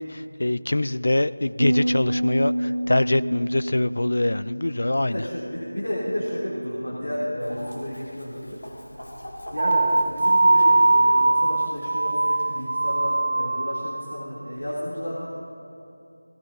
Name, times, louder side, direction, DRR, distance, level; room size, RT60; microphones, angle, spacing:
voice 1, 0.0-5.2, left 1 dB, 50° left, 15 dB, 0.3 m, -24 dB
Bass guitar, 1.6-7.8, right 1 dB, 75° right, 0.7 m, -30 dB
voice 2, 4.8-8.6 9.5-15.3, equal, 65° left, -8 dB, 3.1 m, -32 dB
Chicken rooster, 7.4-13.2, equal, 85° left, 3.2 m, -44 dB
sound 1, 9.6-14.2, right 2 dB, 30° right, 0.4 m, -21 dB
18.5 x 16.5 x 2.8 m, 2.7 s
figure-of-eight pair, 180°, 0 cm